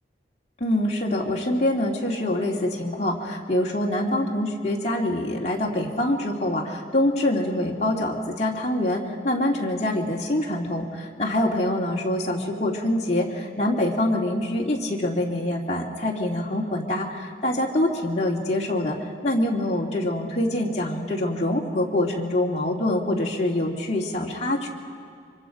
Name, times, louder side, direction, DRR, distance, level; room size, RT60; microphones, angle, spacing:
voice 1, 0.6-24.7, left 1 dB, 40° left, -2 dB, 2.6 m, -25 dB
25.0 x 24.0 x 5.2 m, 2.4 s
head